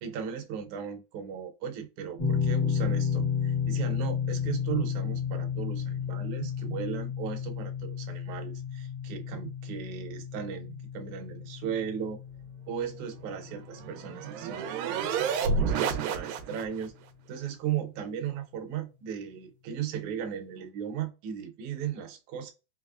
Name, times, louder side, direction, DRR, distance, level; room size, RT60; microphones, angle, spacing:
voice 1, 0.0-12.2 12.7-16.9 17.3-22.5, right 8 dB, 75° right, 2.0 m, -36 dB
sound 1, 2.2-15.1, left 7 dB, 60° left, 0.3 m, -32 dB
sound 2, 13.2-16.9, right 5 dB, 90° right, 2.3 m, -30 dB
5.4 x 2.0 x 2.4 m
omnidirectional pair, 3.9 m